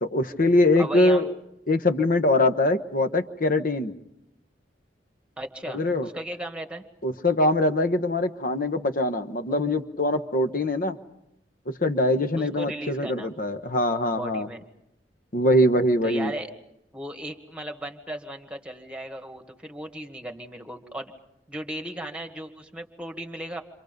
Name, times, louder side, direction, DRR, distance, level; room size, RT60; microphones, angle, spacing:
voice 1, 0.0-1.3 1.7-3.9 5.7-6.1 7.0-11.0 11.7-14.5 15.3-16.3, left 1 dB, 50° left, 10 dB, 1.2 m, -23 dB
voice 2, 0.8-1.3 5.4-6.8 12.4-13.3 14.2-14.6 16.0-16.5 16.9-21.1 21.5-23.6, right 1 dB, 5° right, 5 dB, 1.9 m, -36 dB
29.0 x 26.5 x 5.3 m, 0.85 s
head